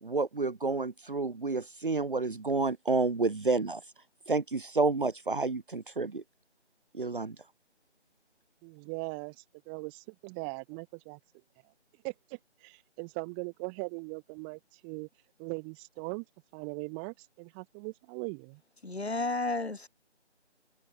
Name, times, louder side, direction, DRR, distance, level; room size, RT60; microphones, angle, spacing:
voice 1, 0.0-3.8 4.3-6.2 6.9-7.3, right 3 dB, 45° right, 1.5 m, -30 dB
voice 2, 8.6-11.2 12.0-15.1 15.4-16.3 16.5-18.6, right 40 dB or more, 10° right, 5.4 m, -40 dB
voice 3, 18.8-19.9, left 2 dB, 65° left, 3.5 m, -32 dB
figure-of-eight pair, 160°, 35 cm